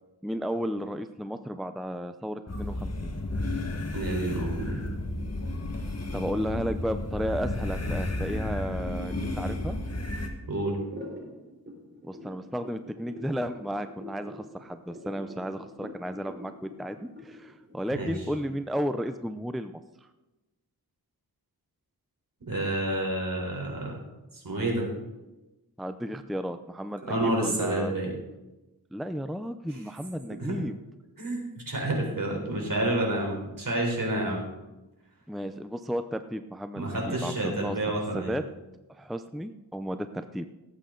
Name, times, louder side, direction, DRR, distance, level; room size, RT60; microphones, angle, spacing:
voice 1, 0.2-3.1 6.1-9.8 12.0-19.7 25.8-27.9 28.9-30.7 35.3-37.8 38.1-38.4 38.9-40.5, equal, ahead, 10 dB, 0.5 m, -33 dB
sound 1, 2.5-10.3, left 1 dB, 40° left, 1.6 m, -32 dB
voice 2, 3.9-4.8 10.5-10.8 17.9-18.1 22.5-24.0 24.3-24.9 27.1-28.1 30.4-30.6 31.2-34.5 36.7-38.4, right 1 dB, 60° right, 0 dB, 4.0 m, -29 dB
sound 2, 10.8-18.6, left 1 dB, 30° right, 4.0 m, -45 dB
18.0 x 8.5 x 3.9 m, 1.0 s
wide cardioid pair, 80°, 37 cm